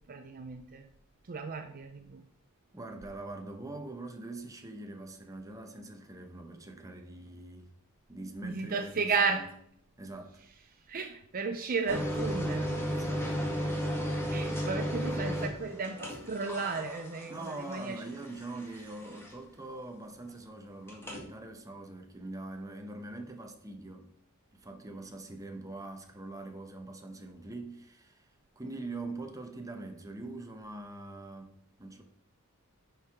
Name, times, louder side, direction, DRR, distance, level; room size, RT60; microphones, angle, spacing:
voice 1, 0.1-0.9 1.3-2.2 8.4-9.5 10.9-12.8 14.3-18.0, right 4 dB, 40° right, 0.5 m, -34 dB
voice 2, 2.7-7.7 8.1-9.5 10.0-10.4 12.9-13.3 17.3-24.1 24.5-28.3 28.6-32.0, right 2 dB, 15° right, 0.9 m, -43 dB
sound 1, 11.9-19.5 20.9-21.2, equal, 10° left, 1.6 m, -34 dB
10.5 x 4.7 x 3.6 m
head